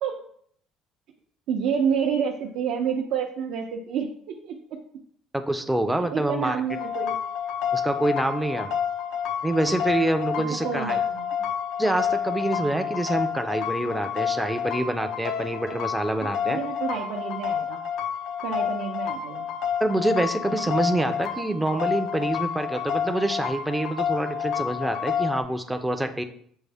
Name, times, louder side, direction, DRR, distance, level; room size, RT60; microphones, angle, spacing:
voice 1, 1.5-4.6 6.0-7.1 10.5-11.5 16.2-17.8 18.4-19.5, right 7 dB, 70° right, 1 dB, 0.5 m, -29 dB
voice 2, 5.3-6.6 7.7-8.7 9.4-11.0 11.8-16.6 19.8-26.2, right 1 dB, 5° right, 7 dB, 0.4 m, -26 dB
sound 1, 6.7-25.4, left 8 dB, 70° left, 0.4 m, -29 dB
6.1 x 2.1 x 3.4 m, 0.63 s
cardioid pair, 125°, 0 cm